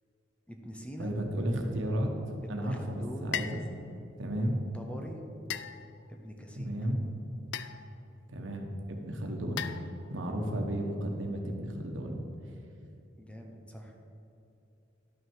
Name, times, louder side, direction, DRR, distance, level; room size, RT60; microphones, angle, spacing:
voice 1, 0.5-1.2 2.4-3.4 4.7-5.2 6.1-6.7 13.2-13.9, equal, 5° left, 2 dB, 0.8 m, -44 dB
voice 2, 1.0-2.1 2.5-3.6 4.2-4.6 6.6-7.0 8.3-9.6 10.1-12.2, right 1 dB, 90° right, 3 dB, 1.2 m, -33 dB
sound 1, 3.3-3.7 5.5-6.2 7.5-8.0 9.6-10.2, left 9 dB, 65° left, 0.4 m, -38 dB
11.0 x 6.2 x 4.6 m, 2.9 s
head